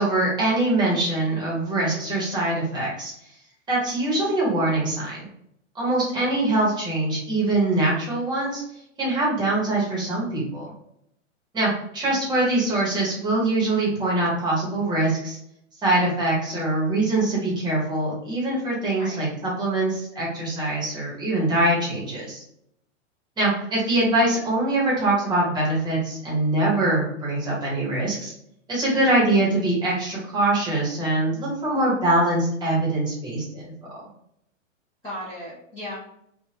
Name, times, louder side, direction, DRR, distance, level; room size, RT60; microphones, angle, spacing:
voice 1, 0.0-3.1 3.7-5.2 5.7-8.6 9.0-10.7 11.5-15.4 15.8-22.4 23.4-28.3 28.7-34.0, right 2 dB, 10° right, -5 dB, 0.9 m, -23 dB
voice 2, 18.9-19.2 28.9-29.2 35.0-36.0, left 1 dB, 10° left, -11 dB, 0.6 m, -37 dB
2.7 x 2.2 x 3.2 m, 0.76 s
hypercardioid pair, 145°, 38 cm